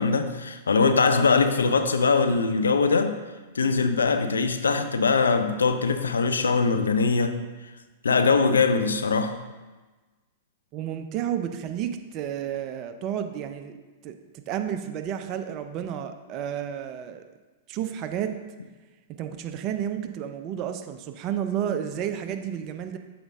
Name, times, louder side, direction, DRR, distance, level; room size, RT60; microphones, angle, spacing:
voice 1, 0.0-3.2 3.5-7.4 8.0-9.4, left 4 dB, 85° left, 0.5 m, -22 dB
voice 2, 10.7-13.8 14.0-14.1 14.5-17.2 17.7-18.3 19.2-23.0, right 9 dB, 40° right, 0.6 m, -31 dB
7.0 x 5.1 x 3.6 m
hypercardioid pair, 105°, 0 cm